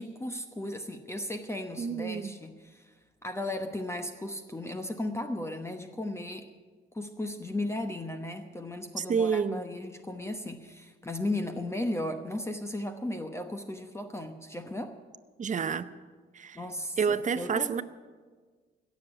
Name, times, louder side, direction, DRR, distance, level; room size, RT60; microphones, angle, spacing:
voice 1, 0.0-2.9 3.2-6.5 6.9-14.9 16.5-17.8, left 1 dB, 15° left, 6 dB, 1.0 m, -35 dB
voice 2, 1.8-2.3 9.0-9.6 15.4-15.9 16.3-16.6 17.0-17.8, right 6 dB, 40° right, 12 dB, 0.8 m, -29 dB
16.5 x 7.3 x 9.8 m, 1.5 s
cardioid pair, 90°, 20 cm